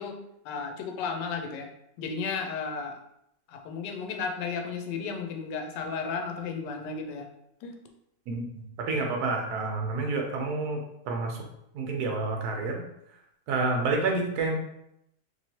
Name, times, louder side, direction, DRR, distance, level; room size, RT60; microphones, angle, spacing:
voice 1, 0.0-1.7 2.0-3.0 3.5-7.3 7.6-7.7, left 5 dB, 85° left, 4 dB, 1.2 m, -34 dB
voice 2, 8.3-10.8 11.0-11.4 11.7-12.8 13.5-14.6, right 3 dB, 70° right, 1 dB, 1.2 m, -29 dB
3.1 x 3.0 x 2.8 m, 0.78 s
omnidirectional pair, 1.8 m